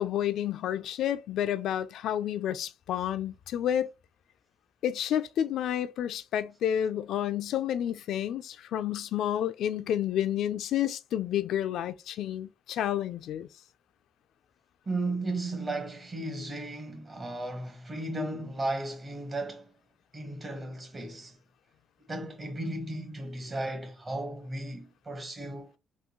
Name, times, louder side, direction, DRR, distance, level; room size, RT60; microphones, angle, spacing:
voice 1, 0.0-3.9 4.8-13.5, left 10 dB, 80° left, 0.3 m, -30 dB
voice 2, 14.9-19.7 20.1-21.4 22.1-25.7, right 2 dB, 30° right, 1.2 m, -35 dB
3.5 x 2.3 x 3.0 m
cardioid pair, 90°, 0 cm